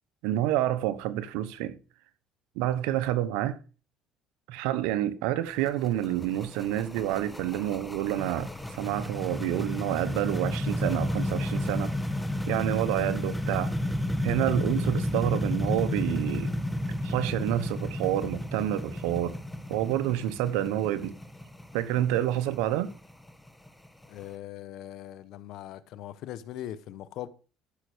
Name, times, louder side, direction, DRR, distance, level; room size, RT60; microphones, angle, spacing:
voice 1, 0.2-1.8 2.6-3.6 4.5-11.9 12.5-13.7 14.2-16.5 17.0-19.4 19.7-21.2 21.7-22.9, right 13 dB, 85° right, 1.2 m, -28 dB
sound 1, 5.5-24.2, left 1 dB, 5° left, 1.7 m, -32 dB
voice 2, 24.1-27.3, left 12 dB, 70° left, 1.0 m, -40 dB
13.5 x 6.5 x 5.1 m
cardioid pair, 105°, 0 cm